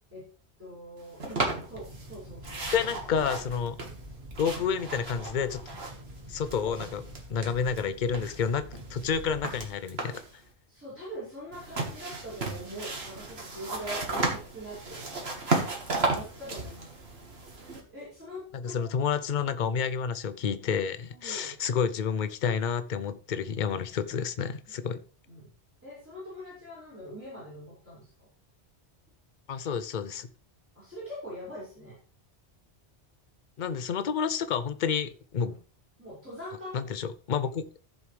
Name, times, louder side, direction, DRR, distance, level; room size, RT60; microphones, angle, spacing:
voice 1, 0.6-2.9 6.6-6.8 10.7-16.9 17.9-18.8 19.6-19.7 21.1-21.5 24.8-24.9 25.3-25.5 25.8-28.1 30.8-31.9 35.4-35.5 36.0-36.7 37.4-37.5, equal, 10° right, 5.7 m, -43 dB
sound 1, 1.2-2.2 2.4-6.2 6.4-7.8 8.1-10.3 11.5-17.8, right 3 dB, 70° right, 2.1 m, -34 dB
Boat Water vehicle, 1.7-9.7, equal, 40° right, 1.7 m, -46 dB
voice 2, 2.7-3.8 4.4-5.6 6.3-7.0 7.3-10.2 18.5-25.0 29.5-30.3 33.6-35.6 36.7-37.7, left 6 dB, 50° left, 0.7 m, -29 dB
14.0 x 7.3 x 3.4 m
omnidirectional pair, 1.1 m